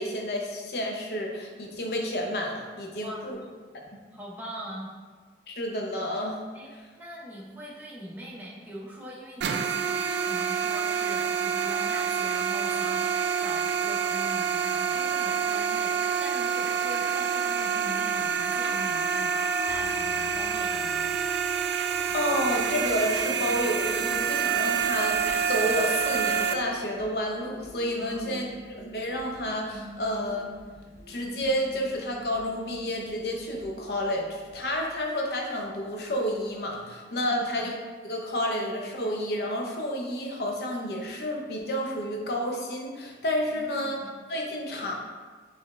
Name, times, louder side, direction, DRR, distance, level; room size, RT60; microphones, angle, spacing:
voice 1, 0.0-3.4 5.5-6.4 22.1-30.5 31.1-37.8 38.0-44.9, equal, 60° left, 1 dB, 0.6 m, -30 dB
voice 2, 3.0-3.4 4.1-4.9 6.5-13.1 13.4-21.2 28.0-28.5 37.2-37.7 43.5-44.1, equal, 10° right, -5 dB, 0.6 m, -42 dB
sound 1, 9.4-26.5, right 7 dB, 75° right, 0.3 m, -27 dB
sound 2, 19.7-35.0, right 1 dB, 35° right, 0.8 m, -49 dB
4.4 x 3.2 x 3.1 m, 1.5 s
head